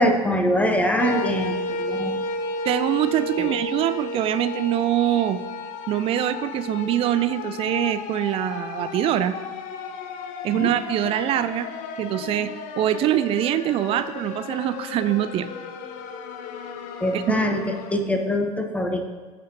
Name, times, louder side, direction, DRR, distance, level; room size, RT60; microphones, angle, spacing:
voice 1, 0.0-2.2 3.4-3.5 10.5-10.7 17.0-17.6 17.9-19.0, equal, 5° left, 5 dB, 0.9 m, -23 dB
sound 1, 1.0-18.0, left 3 dB, 45° left, 0.7 m, -33 dB
voice 2, 2.6-5.4 5.9-9.4 10.4-11.7 12.0-15.5 17.1-17.3, right 12 dB, 30° right, 12 dB, 0.4 m, -24 dB
14.5 x 5.0 x 2.8 m, 1.5 s
figure-of-eight pair, 75°, 19 cm